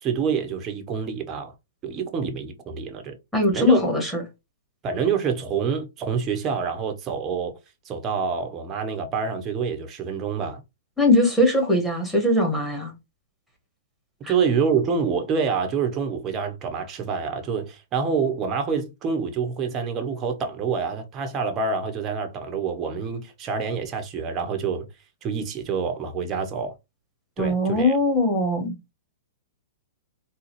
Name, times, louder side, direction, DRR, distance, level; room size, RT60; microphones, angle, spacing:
voice 1, 0.0-1.5 1.8-3.2 3.5-3.8 4.8-7.6 7.8-10.6 14.3-24.9 25.2-26.7 27.4-27.9, right 6 dB, 30° right, 0.9 m, -27 dB
voice 2, 3.3-4.2 11.0-12.9 14.2-14.3 27.4-28.7, left 1 dB, ahead, 1.6 m, -21 dB
3.9 x 2.3 x 3.1 m
hypercardioid pair, 120°, 0 cm